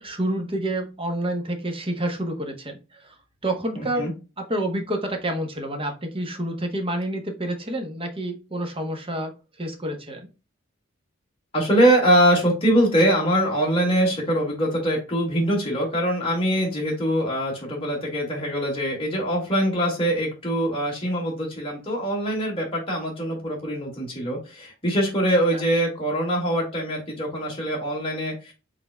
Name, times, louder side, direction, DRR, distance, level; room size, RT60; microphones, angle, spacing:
voice 1, 0.0-3.2 3.4-4.1 4.4-9.3 9.6-10.3 25.5-25.6, right 1 dB, 25° right, 3 dB, 1.0 m, -28 dB
voice 2, 3.8-4.1 11.5-28.5, equal, 25° left, -3 dB, 2.1 m, -23 dB
5.6 x 3.8 x 2.3 m, 0.30 s
head